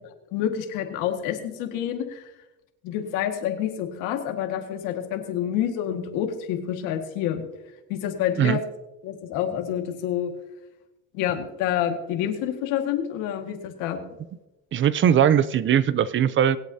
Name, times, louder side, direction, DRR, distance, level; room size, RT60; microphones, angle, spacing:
voice 1, 0.3-2.3 2.8-7.4 7.9-8.6 9.0-10.3 11.1-14.0, left 10 dB, 80° left, 5 dB, 1.8 m, -28 dB
voice 2, 14.7-16.6, right 9 dB, 40° right, 17 dB, 0.5 m, -20 dB
23.5 x 8.2 x 2.8 m, 0.99 s
cardioid pair, 105°, 30 cm